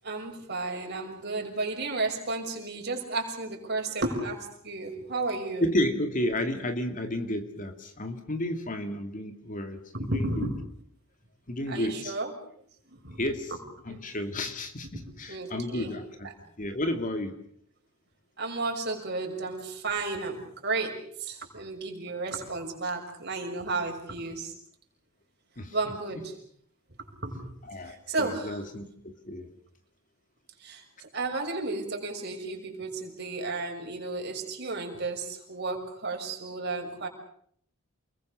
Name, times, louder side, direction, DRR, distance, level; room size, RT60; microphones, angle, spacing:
voice 1, 0.0-5.7 9.9-10.6 11.7-12.3 12.9-13.2 13.9-14.0 14.9-15.9 18.4-24.5 25.7-26.3 27.2-27.5 27.9-28.6 30.6-37.1, right 3 dB, 50° right, 2 dB, 6.2 m, -33 dB
voice 2, 5.6-10.5 11.5-12.1 13.2-13.5 13.9-16.3 16.6-17.3 25.6-25.7 26.2-26.3 27.7-29.5, left 1 dB, 40° left, 7 dB, 2.4 m, -32 dB
29.5 x 21.5 x 6.7 m, 0.63 s
head